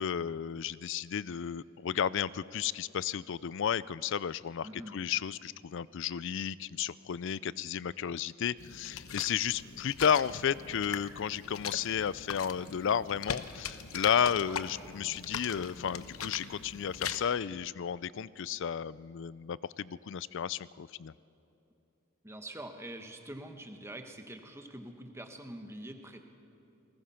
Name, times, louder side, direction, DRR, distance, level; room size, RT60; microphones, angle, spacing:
voice 1, 0.0-21.1, left 8 dB, 60° left, 19 dB, 0.4 m, -33 dB
voice 2, 4.6-4.9 14.4-14.6 22.2-26.2, right 1 dB, 15° right, 5 dB, 1.3 m, -45 dB
sound 1, 8.6-17.2, left 7 dB, 85° left, 0.9 m, -41 dB
28.0 x 20.0 x 5.7 m, 2.9 s
head